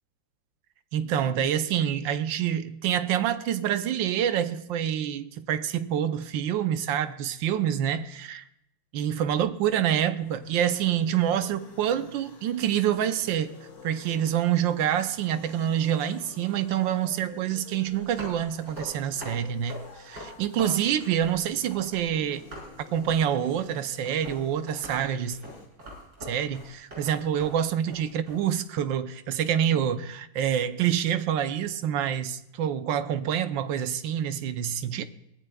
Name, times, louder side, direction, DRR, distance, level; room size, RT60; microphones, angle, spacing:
voice 1, 0.9-8.4 8.9-13.5 13.8-22.4 22.9-25.4 26.2-35.0, right 9 dB, 70° right, 1.3 m, -27 dB
sound 1, 10.0-25.7, left 3 dB, 60° left, 2.7 m, -49 dB
sound 2, 17.9-22.0 22.3-28.5, equal, 50° right, 6.9 m, -43 dB
22.5 x 16.0 x 2.3 m
omnidirectional pair, 2.4 m